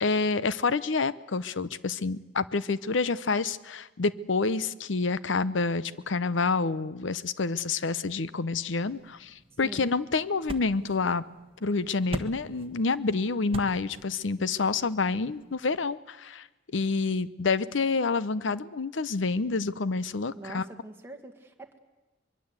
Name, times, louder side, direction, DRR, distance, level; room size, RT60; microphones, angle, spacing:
voice 1, 0.0-11.2 11.6-16.5 16.7-20.6, left 4 dB, 85° left, 17 dB, 0.7 m, -28 dB
sound 1, 8.8-15.9, right 1 dB, 30° right, 1.3 m, -44 dB
voice 2, 20.3-21.8, right 2 dB, 10° right, 2 dB, 1.8 m, -44 dB
24.0 x 22.0 x 8.1 m, 1.1 s
head